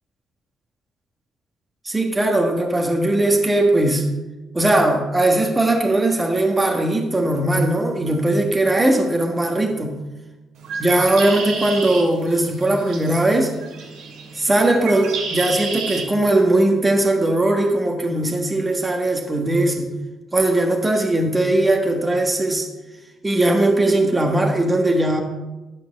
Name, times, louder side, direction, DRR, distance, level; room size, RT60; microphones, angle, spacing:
voice 1, 1.8-4.1 4.5-9.9 10.8-13.5 14.3-19.9 20.3-22.7 23.2-25.2, right 1 dB, 20° right, 2 dB, 1.4 m, -19 dB
Bird, 10.6-16.0, right 4 dB, 90° right, 2.1 m, -31 dB
11.5 x 4.5 x 7.1 m, 1.1 s
cardioid pair, 90°, 0 cm